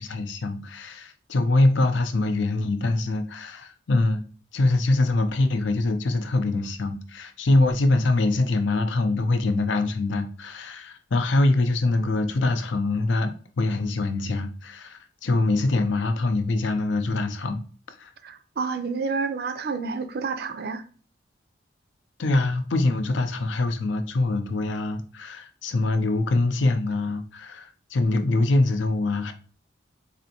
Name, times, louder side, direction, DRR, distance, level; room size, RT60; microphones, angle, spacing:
voice 1, 0.0-4.2 4.5-18.1 22.2-29.3, left 2 dB, 75° left, 0.5 m, -24 dB
voice 2, 18.2-20.8, right 4 dB, 55° right, 0.4 m, -29 dB
4.1 x 2.6 x 2.8 m
head